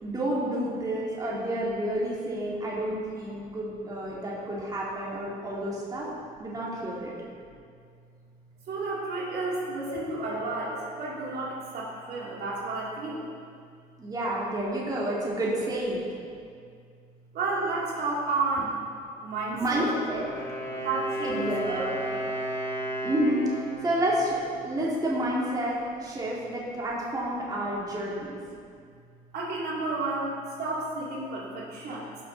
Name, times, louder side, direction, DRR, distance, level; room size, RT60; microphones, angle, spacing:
voice 1, 0.0-6.1 6.4-7.1 14.0-16.0 19.5-20.2 21.2-21.8 23.0-28.4, right 1 dB, 20° right, -6 dB, 2.4 m, -29 dB
voice 2, 8.7-13.3 17.3-18.8 19.2-19.8 20.7-22.3 29.3-32.1, right 3 dB, 70° right, -5 dB, 2.7 m, -31 dB
Wind instrument woodwind instrument, 19.6-25.4, right 1 dB, 15° left, 1.6 m, -34 dB
17.0 x 6.0 x 4.1 m, 2.2 s
cardioid pair, 110°, 17 cm